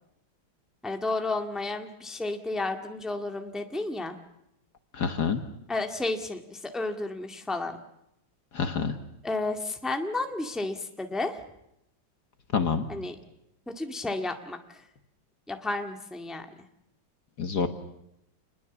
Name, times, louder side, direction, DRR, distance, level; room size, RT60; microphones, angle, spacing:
voice 1, 0.8-4.2 5.7-7.8 9.2-11.4 12.9-13.2 13.7-14.8 15.5-16.5, left 2 dB, ahead, 5 dB, 1.8 m, -32 dB
voice 2, 4.9-5.4 8.5-9.0 12.5-12.9 17.4-17.7, left 6 dB, 55° left, 8 dB, 1.9 m, -27 dB
28.0 x 21.0 x 7.2 m, 0.82 s
omnidirectional pair, 2.2 m